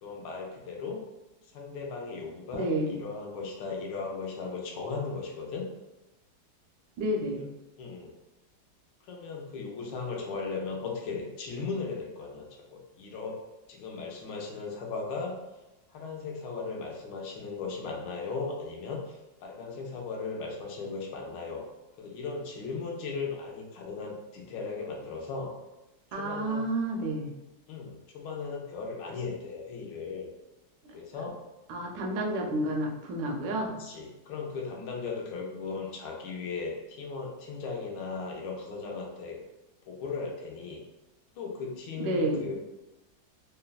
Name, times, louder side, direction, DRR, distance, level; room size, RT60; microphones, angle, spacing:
voice 1, 0.0-1.0 1.5-5.7 7.8-8.1 9.1-13.4 13.7-15.4 15.9-21.6 22.0-25.5 26.2-26.6 27.7-30.3 30.9-31.4 33.7-39.4 39.9-40.8 41.4-42.6, left 4 dB, 75° left, 0 dB, 1.2 m, -37 dB
voice 2, 2.5-3.0 7.0-7.5 26.1-27.3 31.7-33.8 42.0-42.5, right 1 dB, 75° right, 1 dB, 1.2 m, -30 dB
3.3 x 2.1 x 2.3 m, 1.0 s
omnidirectional pair, 2.1 m